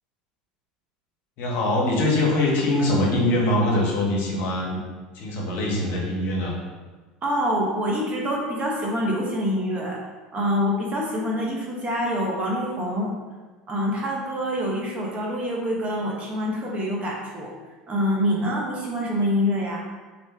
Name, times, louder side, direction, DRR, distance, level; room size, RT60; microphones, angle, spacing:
voice 1, 1.4-4.8 5.1-6.5, left 1 dB, 55° left, -2 dB, 0.7 m, -23 dB
voice 2, 7.2-10.0 10.3-13.1 13.7-17.5 17.9-19.8, equal, 30° right, -2 dB, 0.7 m, -26 dB
2.5 x 2.1 x 3.3 m, 1.3 s
hypercardioid pair, 80°, 4 cm